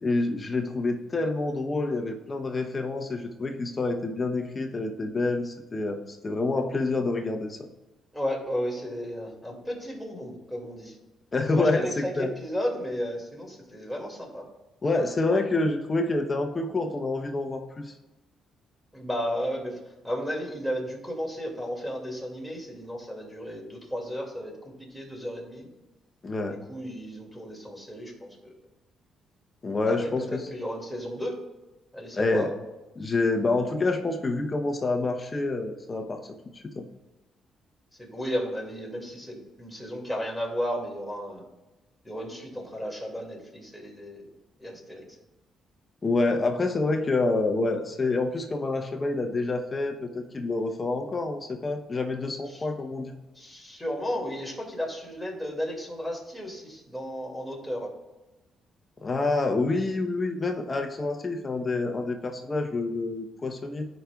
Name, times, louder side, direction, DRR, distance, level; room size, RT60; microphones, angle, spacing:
voice 1, 0.0-7.6 11.3-12.3 14.8-17.9 26.2-26.6 29.6-30.4 32.1-32.5 33.0-36.2 36.5-36.8 46.0-53.1 59.0-63.9, left 3 dB, 30° left, 4 dB, 0.8 m, -27 dB
voice 2, 8.1-11.0 11.5-14.5 18.9-24.5 24.8-25.7 26.5-28.5 29.8-31.3 31.9-32.5 38.0-41.4 42.0-44.3 44.6-45.0 52.5-52.6 53.4-57.9, equal, ahead, -1 dB, 2.3 m, -34 dB
14.0 x 5.2 x 2.4 m, 1.1 s
cardioid pair, 90°, 0 cm